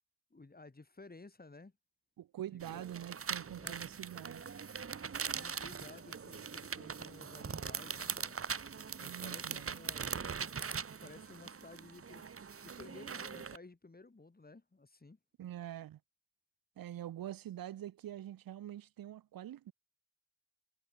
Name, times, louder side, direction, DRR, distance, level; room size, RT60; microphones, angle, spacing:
voice 1, 0.3-1.7 2.5-2.9 3.6-3.9 5.2-8.4 9.0-10.4 11.0-12.3 12.6-15.2, left 3 dB, 25° left, 4.5 m, -55 dB
voice 2, 2.2-4.5 9.0-9.8 15.4-16.0 16.8-19.7, right 12 dB, 85° right, 1.0 m, -45 dB
sound 1, 2.6-13.6, right 6 dB, 40° right, 1.1 m, -41 dB
cardioid pair, 60°, 34 cm